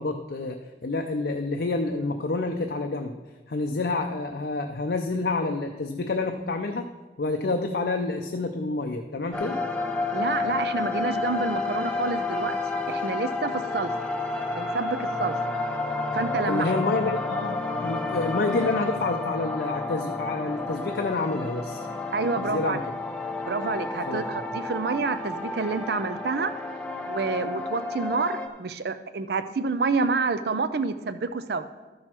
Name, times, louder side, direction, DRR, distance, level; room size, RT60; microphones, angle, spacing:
voice 1, 0.0-3.1 3.5-6.9 7.2-9.6 16.5-21.9 22.4-22.8 24.1-24.4, left 3 dB, 70° left, 4 dB, 0.5 m, -28 dB
sound 1, 9.3-28.5, left 3 dB, 5° left, 0.6 m, -30 dB
voice 2, 10.1-12.6 12.9-13.9 14.6-15.4 16.1-16.8 22.1-22.8 23.5-26.5 27.1-31.7, right 4 dB, 70° right, 11 dB, 0.5 m, -28 dB
13.0 x 6.3 x 4.4 m, 1.2 s
head